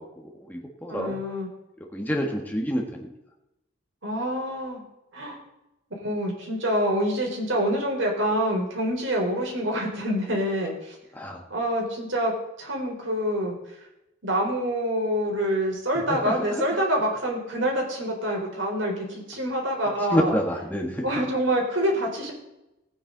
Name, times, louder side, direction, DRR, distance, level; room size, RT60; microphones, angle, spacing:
voice 1, 0.0-1.2 1.8-3.1 11.1-11.4 16.1-16.6 20.1-21.0, equal, 10° left, 1 dB, 1.6 m, -28 dB
voice 2, 0.9-1.5 4.0-4.8 5.1-5.4 6.0-11.0 11.5-12.3 12.6-13.6 14.2-20.3 21.0-22.3, equal, 85° right, 0 dB, 4.3 m, -26 dB
18.5 x 9.4 x 4.0 m, 0.90 s
head